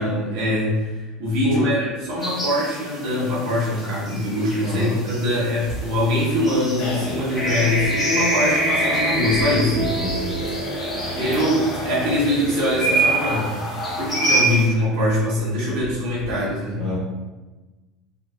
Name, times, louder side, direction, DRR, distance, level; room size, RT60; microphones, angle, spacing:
voice 1, 0.0-9.7 11.1-13.6 14.0-16.8, left 1 dB, 60° right, -7 dB, 1.5 m, -23 dB
sound 1, 2.2-14.7, right 2 dB, 15° left, 1.3 m, -26 dB
voice 2, 4.6-5.0 9.7-10.4 16.8-17.0, equal, 15° right, -10 dB, 1.4 m, -28 dB
sound 2, 5.6-14.7 15.0-15.1 15.4-15.5 15.8-16.3, left 2 dB, 65° left, 1.2 m, -31 dB
Wind instrument woodwind instrument, 7.4-11.4, right 3 dB, 90° right, 0.5 m, -31 dB
4.1 x 2.8 x 2.6 m, 1.2 s
cardioid pair, 165°, 0 cm